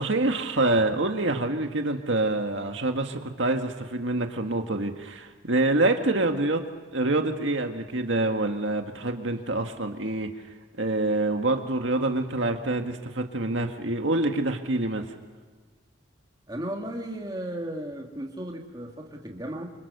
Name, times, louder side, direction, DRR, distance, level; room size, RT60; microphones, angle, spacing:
voice 1, 0.0-6.6 6.9-10.3 10.8-15.0, right 2 dB, 70° right, 4 dB, 1.8 m, -26 dB
voice 2, 16.5-19.7, right 1 dB, 20° right, 1 dB, 2.6 m, -35 dB
29.0 x 25.5 x 6.8 m, 1.4 s
head